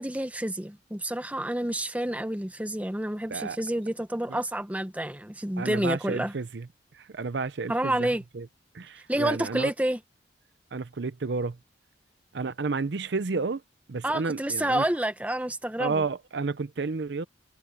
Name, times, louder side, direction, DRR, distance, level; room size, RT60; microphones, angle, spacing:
voice 1, 0.0-6.3 7.7-8.2 9.1-10.0 14.0-16.0, right 1 dB, 5° right, 0.9 m, -29 dB
voice 2, 5.6-6.7 6.9-8.5 8.7-9.7 10.7-11.6 12.3-13.6 13.9-14.8 15.8-17.2, right 4 dB, 65° right, 0.6 m, -31 dB
head